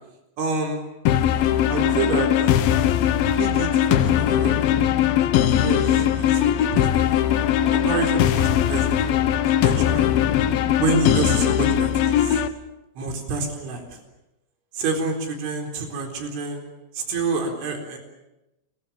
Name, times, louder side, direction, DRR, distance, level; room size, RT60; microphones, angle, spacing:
voice 1, 0.4-0.8 1.7-2.3 3.4-4.6 5.6-7.2 7.7-10.1 10.8-12.4 13.0-14.0 14.7-16.7 16.9-18.0, right 4 dB, 65° right, 3 dB, 6.4 m, -28 dB
sound 1, 1.1-12.5, left 10 dB, 75° left, 2.1 m, -20 dB
29.5 x 23.0 x 7.4 m, 0.96 s
omnidirectional pair, 5.9 m